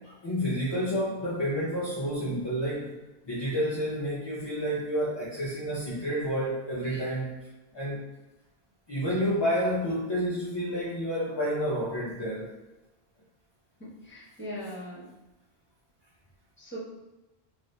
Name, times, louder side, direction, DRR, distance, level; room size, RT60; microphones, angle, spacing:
voice 1, 0.0-2.9 3.3-7.3 7.7-8.0 8.9-12.5, equal, 35° left, -7 dB, 0.4 m, -29 dB
voice 2, 13.8-15.1 16.6-16.8, equal, 10° left, -8 dB, 0.9 m, -40 dB
2.6 x 2.4 x 3.2 m, 1.0 s
omnidirectional pair, 1.1 m